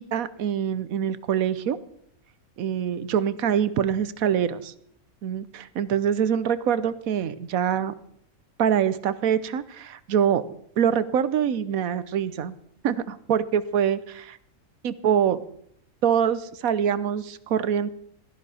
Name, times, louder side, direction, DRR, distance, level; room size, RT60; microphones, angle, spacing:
voice 1, 0.0-1.8 2.6-4.7 5.2-7.9 8.6-10.4 10.8-12.5 12.8-14.4 14.8-15.4 16.0-17.9, right 8 dB, 75° right, 15 dB, 1.2 m, -24 dB
17.0 x 13.5 x 4.2 m, 0.67 s
omnidirectional pair, 1.5 m